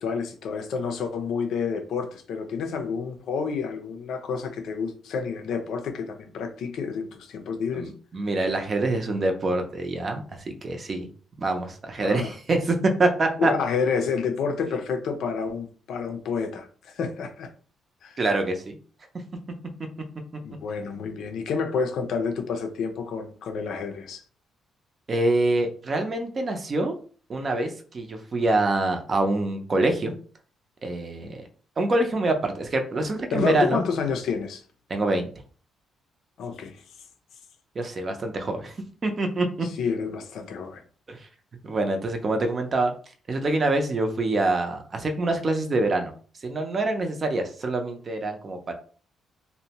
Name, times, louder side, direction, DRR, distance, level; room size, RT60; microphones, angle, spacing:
voice 1, 0.0-7.9 12.0-12.3 13.4-17.5 18.0-18.2 20.4-24.2 33.3-34.6 36.4-36.8 39.8-40.8, left 5 dB, 75° left, 0.4 m, -29 dB
voice 2, 7.7-11.1 11.4-13.5 18.2-18.8 25.1-26.9 27.3-30.1 30.8-31.4 31.8-33.8 34.9-35.3 37.7-38.7 39.0-39.7 41.1-41.3 41.6-42.9 43.3-46.1 46.4-48.7, right 2 dB, 40° right, 0.6 m, -25 dB
2.6 x 2.1 x 2.8 m
cardioid pair, 90°, 0 cm